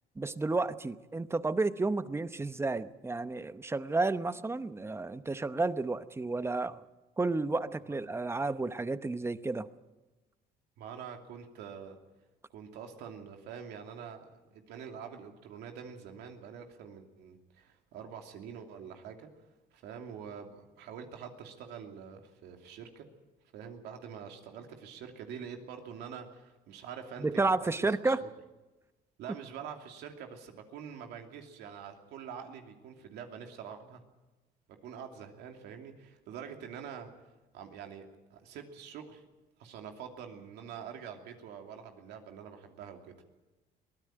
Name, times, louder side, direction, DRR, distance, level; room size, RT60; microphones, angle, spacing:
voice 1, 0.2-6.8 7.2-9.7 27.2-28.2, right 3 dB, 15° right, 13 dB, 0.9 m, -31 dB
voice 2, 10.8-12.0 12.5-19.3 19.7-23.0 23.5-27.6 27.9-28.3 29.2-34.0 34.8-37.1 37.5-39.2 39.6-43.2, right 7 dB, 85° right, 4 dB, 2.8 m, -45 dB
23.0 x 16.5 x 9.0 m, 1.1 s
cardioid pair, 110°, 17 cm